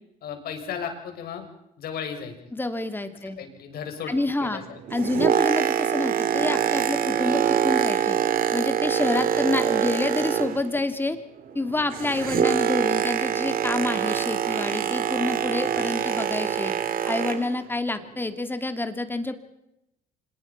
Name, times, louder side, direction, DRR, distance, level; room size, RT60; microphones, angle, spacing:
voice 1, 0.2-1.5 1.8-2.3 3.4-4.1 4.4-4.6, left 7 dB, 65° left, 4 dB, 6.6 m, -34 dB
voice 2, 2.5-3.4 4.1-4.6 4.9-8.2 8.5-11.2 11.5-16.7 17.1-19.4, left 2 dB, 10° left, 9 dB, 2.6 m, -28 dB
Boat Water vehicle, 4.7-10.8 11.1-17.6 18.2-18.3, right 9 dB, 60° right, 2.3 m, -25 dB
26.5 x 21.5 x 6.0 m, 0.85 s
cardioid pair, 110°, 17 cm